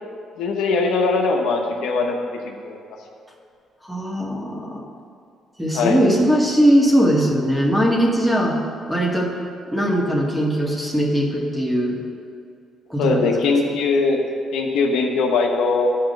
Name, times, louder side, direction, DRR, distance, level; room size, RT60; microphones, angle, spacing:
voice 1, 0.4-2.2 2.5-2.8 5.7-6.0 13.0-14.2 14.5-15.9, left 4 dB, 80° left, 1 dB, 1.0 m, -20 dB
voice 2, 3.8-4.8 5.6-8.6 8.9-9.3 9.7-12.0 12.9-13.3, equal, 5° right, -1 dB, 1.9 m, -19 dB
10.5 x 5.1 x 6.6 m, 2.3 s
supercardioid pair, 70°, 0 cm